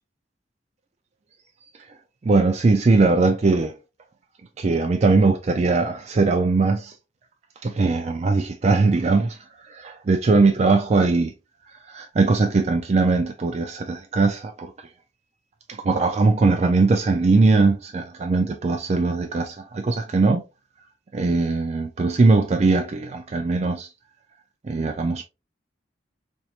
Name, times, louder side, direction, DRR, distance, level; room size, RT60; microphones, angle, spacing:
voice 1, 2.2-3.7 4.6-6.9 7.6-9.4 9.7-11.3 11.9-14.7 15.7-20.4 21.1-23.9 24.6-25.2, right 3 dB, 35° right, 0.4 m, -20 dB
4.4 x 2.8 x 2.4 m
head